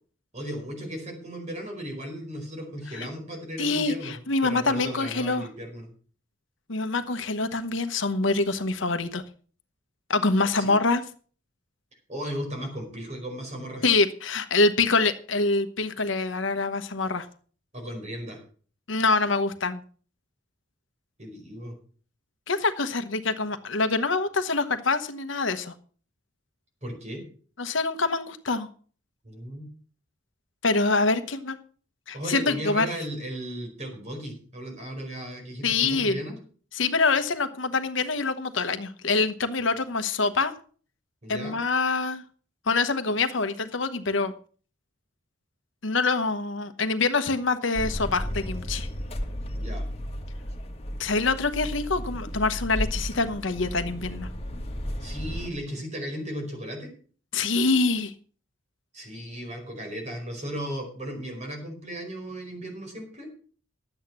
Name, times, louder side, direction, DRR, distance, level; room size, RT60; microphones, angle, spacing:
voice 1, 0.3-4.2 4.4-5.9 10.6-10.7 12.1-13.8 17.7-18.4 21.2-21.7 26.8-27.2 29.2-29.7 32.1-36.4 41.2-41.6 49.5-49.8 55.0-56.9 58.9-63.3, equal, 35° right, 3 dB, 4.8 m, -36 dB
voice 2, 3.6-5.5 6.7-9.2 10.1-11.0 13.8-17.3 18.9-19.8 22.5-25.7 27.6-28.7 30.6-31.6 32.1-32.9 35.6-36.2 36.7-40.5 41.3-42.2 42.7-44.3 45.8-48.9 51.0-54.3 57.3-58.1, left 3 dB, 70° left, 9 dB, 1.1 m, -25 dB
sound 1, 47.8-55.5, equal, 30° left, 1.7 m, -33 dB
12.0 x 8.7 x 6.1 m, 0.43 s
head